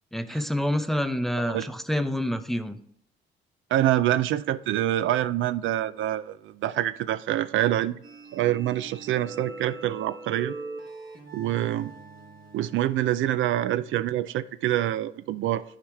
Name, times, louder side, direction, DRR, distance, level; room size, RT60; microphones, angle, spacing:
voice 1, 0.1-2.8, equal, ahead, 0.6 m, -27 dB
voice 2, 3.7-8.0 8.3-10.5 11.3-11.9 12.5-15.6, right 13 dB, 75° right, 0.4 m, -26 dB
sound 1, 8.0-13.3, right 3 dB, 45° right, 1.6 m, -42 dB
11.5 x 4.9 x 3.5 m
cardioid pair, 90°, 20 cm